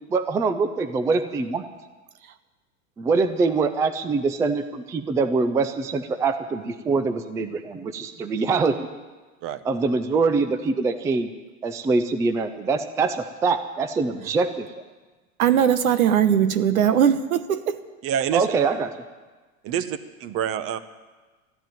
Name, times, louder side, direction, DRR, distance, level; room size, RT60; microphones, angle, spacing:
voice 1, 0.1-1.6 3.0-8.9 9.7-11.3 11.6-14.7 18.3-18.9, right 4 dB, 10° right, 9 dB, 0.4 m, -24 dB
voice 2, 15.4-17.8, right 9 dB, 85° right, 11 dB, 1.1 m, -20 dB
voice 3, 18.0-18.5 19.6-20.8, right 9 dB, 35° right, 13 dB, 0.9 m, -27 dB
13.5 x 10.5 x 9.2 m, 1.3 s
supercardioid pair, 130°, 42 cm